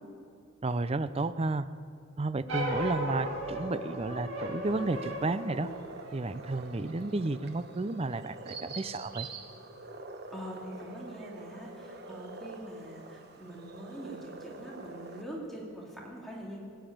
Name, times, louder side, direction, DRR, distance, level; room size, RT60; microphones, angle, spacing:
voice 1, 0.6-1.7 2.2-5.7 6.1-9.3, right 2 dB, 25° right, 13 dB, 0.4 m, -32 dB
sound 1, 2.5-7.1, right 1 dB, 65° right, 2.4 m, -36 dB
sound 2, 4.6-15.2, right 3 dB, 50° right, 1.1 m, -46 dB
voice 2, 10.3-16.6, equal, ahead, -4 dB, 2.5 m, -43 dB
19.5 x 8.1 x 8.8 m, 2.5 s
head